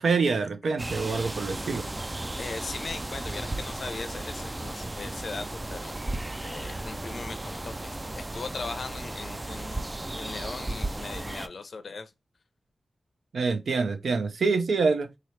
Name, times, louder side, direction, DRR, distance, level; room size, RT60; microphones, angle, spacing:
voice 1, 0.0-1.8 13.3-15.1, right 4 dB, 85° right, 0.6 m, -26 dB
sound 1, 0.8-11.5, right 2 dB, 25° right, 0.3 m, -35 dB
voice 2, 2.4-5.9 6.4-9.8 10.1-12.1, left 4 dB, 70° left, 0.5 m, -39 dB
3.8 x 2.9 x 3.2 m
wide cardioid pair, 70°, 0 cm